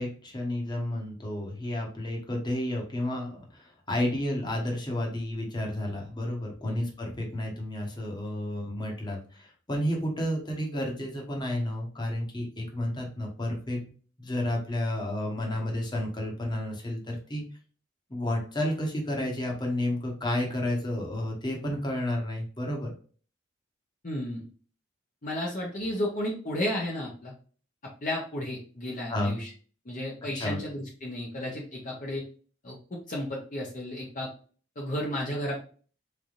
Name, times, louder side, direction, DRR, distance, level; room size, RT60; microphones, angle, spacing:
voice 1, 0.0-13.9 14.2-17.4 18.1-22.9 29.1-29.4 30.3-30.6, left 1 dB, 25° left, 0 dB, 1.1 m, -31 dB
voice 2, 24.0-24.4 25.2-27.3 28.0-29.5 29.8-32.2 32.6-34.3 34.8-35.6, left 1 dB, 45° left, -2 dB, 0.9 m, -33 dB
4.1 x 3.4 x 2.5 m, 0.41 s
head